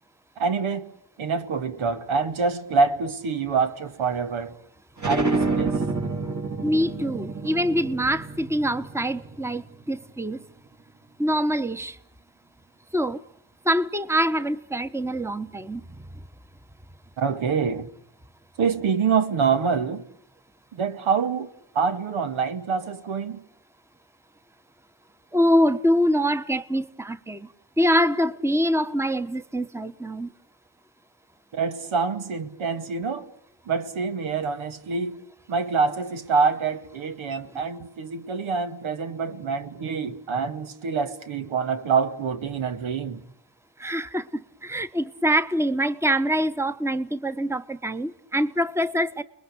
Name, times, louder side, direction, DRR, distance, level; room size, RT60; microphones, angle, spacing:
voice 1, 0.4-0.9 1.2-4.6 5.0-5.8 17.2-17.9 18.6-20.0 20.7-21.5 21.7-23.4 31.5-33.3 33.7-35.2 35.5-43.2, right 5 dB, 80° right, 2.2 m, -26 dB
sound 1, 5.0-10.3, right 3 dB, 35° right, 3.7 m, -29 dB
voice 2, 6.6-10.4 11.2-12.0 12.9-13.2 13.6-15.8 25.3-27.5 27.8-30.3 43.8-49.2, equal, 5° right, 1.3 m, -24 dB
30.0 x 21.5 x 8.6 m
cardioid pair, 65°, 47 cm